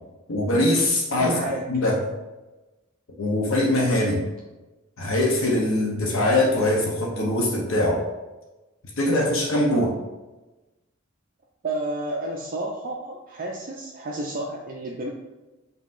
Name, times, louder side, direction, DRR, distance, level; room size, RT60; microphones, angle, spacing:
voice 1, 0.3-1.4 1.7-2.0 3.2-4.2 5.0-8.0 9.0-10.0, left 1 dB, 75° left, -2 dB, 0.7 m, -22 dB
voice 2, 1.2-1.6 11.6-15.1, right 1 dB, 45° right, -1 dB, 0.4 m, -30 dB
5.4 x 2.8 x 2.5 m, 1.1 s
head